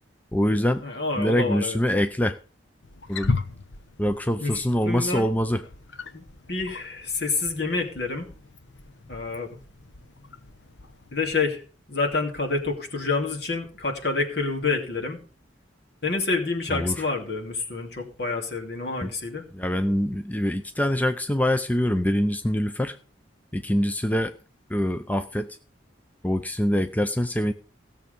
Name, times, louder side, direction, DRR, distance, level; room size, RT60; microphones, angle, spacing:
voice 1, 0.3-0.8 1.2-2.4 3.1-3.3 4.0-5.6 16.7-17.0 19.0-19.1 19.5-23.0 23.5-24.3 24.7-25.6 26.2-27.5, equal, 10° left, 9 dB, 0.5 m, -24 dB
voice 2, 0.8-1.8 4.4-5.3 6.1-8.3 9.1-9.6 11.1-15.2 16.0-19.4, left 3 dB, 60° left, 1 dB, 2.9 m, -28 dB
Wild animals, 2.8-11.3, left 3 dB, 75° left, 1.2 m, -37 dB
17.0 x 7.0 x 5.2 m, 0.37 s
head